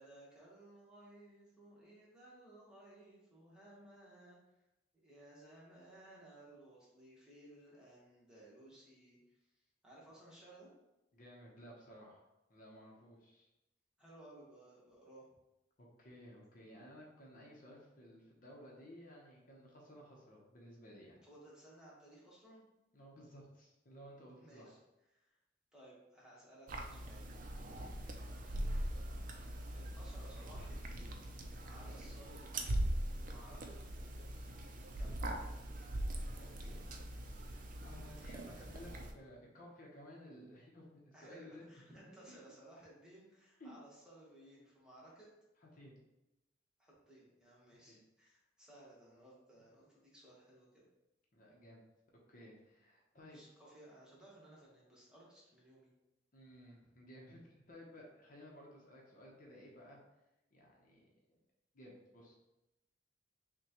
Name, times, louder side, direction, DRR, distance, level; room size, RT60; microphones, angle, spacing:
voice 1, 0.0-4.4 4.9-9.2 9.8-10.7 14.0-15.3 21.2-22.6 24.4-24.8 25.1-25.4 25.7-27.3 29.7-31.2 31.6-33.8 34.9-35.3 41.1-45.3 46.8-50.9 53.1-55.9, right 1 dB, 5° right, -6 dB, 1.2 m, -59 dB
voice 2, 11.1-12.2 12.5-13.5 15.8-21.2 22.9-24.7 28.0-28.1 35.2-35.4 36.4-36.8 37.1-41.7 41.9-42.4 43.6-43.8 45.6-45.9 47.9-48.0 51.3-51.8 52.3-53.4 56.3-60.0 60.5-61.4 61.7-62.4, equal, 50° left, -2 dB, 0.8 m, -56 dB
sound 1, 26.7-39.1, right 1 dB, 50° right, 0.4 m, -41 dB
5.9 x 2.2 x 2.9 m, 0.94 s
head